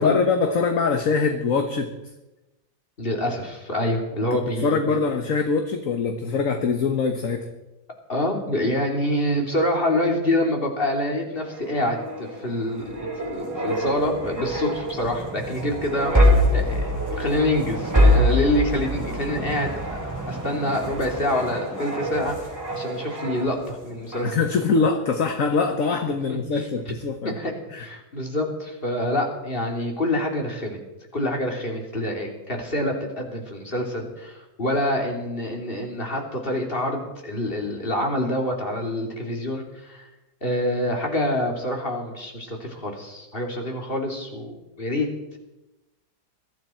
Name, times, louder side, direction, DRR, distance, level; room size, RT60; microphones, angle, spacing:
voice 1, 0.0-1.9 4.3-7.5 24.2-27.4 27.7-27.9, left 4 dB, 55° left, 5 dB, 1.6 m, -23 dB
voice 2, 3.0-5.0 8.1-19.7 20.3-22.4 22.7-24.4 26.3-26.4 26.9-27.0 27.4-30.8 31.1-40.1 40.4-45.1, left 1 dB, 35° left, 1 dB, 3.2 m, -26 dB
sound 1, 11.4-23.8 24.1-24.4, equal, 10° right, 5.3 m, -25 dB
22.0 x 14.0 x 4.5 m, 0.99 s
omnidirectional pair, 1.7 m